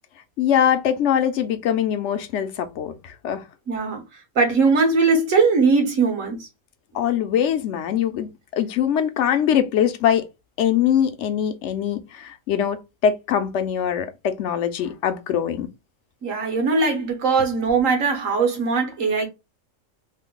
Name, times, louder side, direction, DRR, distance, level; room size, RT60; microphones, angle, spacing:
voice 1, 0.4-3.4 6.9-10.2 10.6-15.7, left 9 dB, 65° left, 0.9 m, -22 dB
voice 2, 3.7-4.0 4.4-6.4 16.2-19.3, right 4 dB, 75° right, 1.5 m, -20 dB
3.2 x 2.2 x 3.7 m
omnidirectional pair, 1.4 m